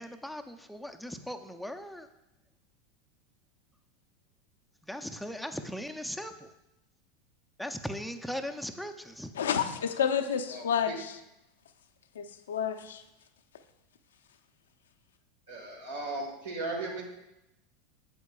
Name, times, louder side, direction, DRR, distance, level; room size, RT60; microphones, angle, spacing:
voice 1, 0.0-2.1 4.9-6.5 7.6-9.3, equal, ahead, 6 dB, 0.5 m, -38 dB
voice 2, 9.3-11.2 12.2-13.0, left 8 dB, 75° left, 6 dB, 0.5 m, -30 dB
voice 3, 10.5-10.9 15.5-17.0, right 2 dB, 75° right, 0 dB, 1.8 m, -37 dB
8.1 x 7.8 x 2.3 m, 0.90 s
hypercardioid pair, 85°, 0 cm